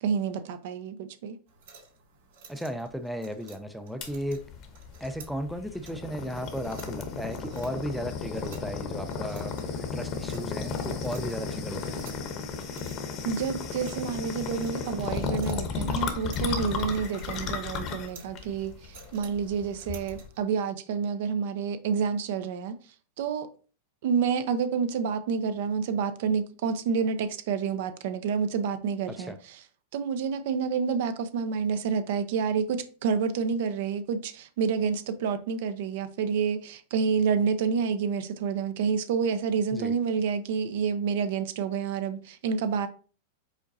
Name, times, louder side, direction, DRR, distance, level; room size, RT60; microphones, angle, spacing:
voice 1, 0.0-1.4 13.2-22.8 23.2-23.5 24.0-29.6 29.9-42.9, right 6 dB, 65° right, 0.5 m, -28 dB
sound 1, 1.5-20.4, right 5 dB, 80° right, 2.1 m, -54 dB
voice 2, 2.5-4.4 5.0-12.0 29.1-29.4 39.7-39.9, equal, ahead, 0.4 m, -35 dB
sound 2, 4.0-20.3, left 5 dB, 35° left, 0.8 m, -34 dB
5.0 x 3.8 x 2.6 m
supercardioid pair, 140°, 0 cm